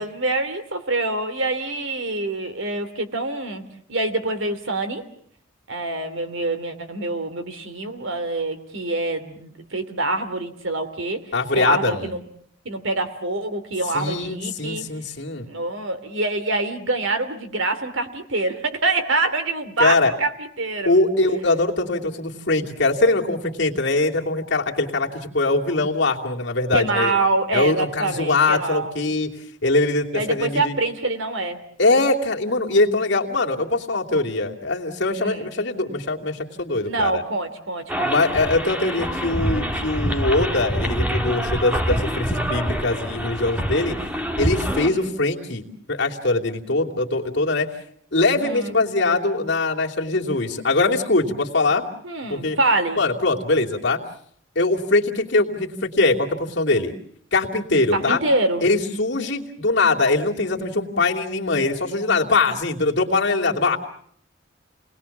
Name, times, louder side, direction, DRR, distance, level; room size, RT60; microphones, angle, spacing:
voice 1, 0.0-3.6 3.9-5.0 5.7-12.2 12.6-14.8 15.5-21.0 26.7-28.9 30.1-31.6 35.2-35.5 36.8-38.1 44.7-45.1 48.4-48.7 52.0-53.0 57.9-58.6, right 2 dB, 80° right, 9 dB, 2.8 m, -25 dB
voice 2, 11.3-12.1 13.9-15.5 19.8-20.1 20.8-27.2 27.5-29.3 29.6-30.7 31.8-37.2 38.0-44.0 44.4-45.6 45.9-47.7 48.1-51.8 52.3-52.6 53.0-54.0 54.5-56.9 57.3-58.2 58.6-63.8, left 2 dB, 60° left, 0 dB, 2.8 m, -22 dB
sound 1, 37.9-44.9, equal, 10° right, 1.5 m, -25 dB
29.5 x 20.0 x 7.3 m, 0.62 s
head